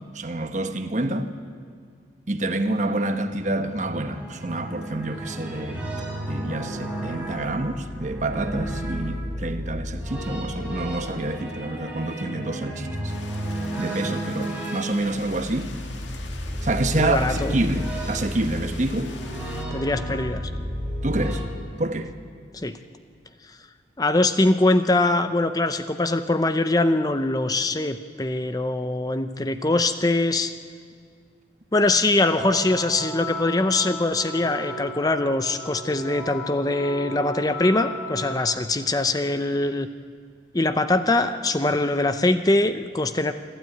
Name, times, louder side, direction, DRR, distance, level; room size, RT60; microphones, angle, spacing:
voice 1, 0.1-1.3 2.3-5.8 6.3-12.9 13.8-15.7 16.6-19.1 21.0-21.4 21.8-22.1, right 2 dB, 40° right, 1.1 m, -27 dB
sound 1, 3.2-21.4, equal, 5° right, 4.5 m, -32 dB
sound 2, 13.1-19.6, left 4 dB, 85° left, 1.9 m, -44 dB
voice 2, 16.9-17.6 19.7-20.5 22.5-22.8 24.0-30.5 31.7-39.9 40.5-43.3, left 2 dB, 20° left, 0.6 m, -22 dB
sound 3, 32.3-38.4, left 1 dB, 60° left, 6.3 m, -35 dB
27.5 x 12.5 x 9.3 m
head